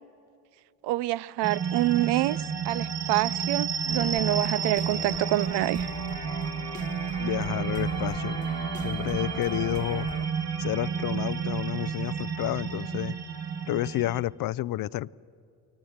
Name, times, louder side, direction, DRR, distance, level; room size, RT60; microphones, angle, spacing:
voice 1, 0.8-5.9, right 17 dB, 70° right, 0.5 m, -27 dB
sound 1, 1.4-14.2, right 6 dB, 35° right, 1.3 m, -31 dB
sound 2, 3.9-10.3, left 4 dB, 15° left, 1.2 m, -40 dB
voice 2, 7.2-8.4 8.8-10.1 10.6-13.2 13.7-15.1, left 15 dB, 55° left, 0.5 m, -30 dB
23.0 x 19.5 x 8.0 m
supercardioid pair, 75°, 43 cm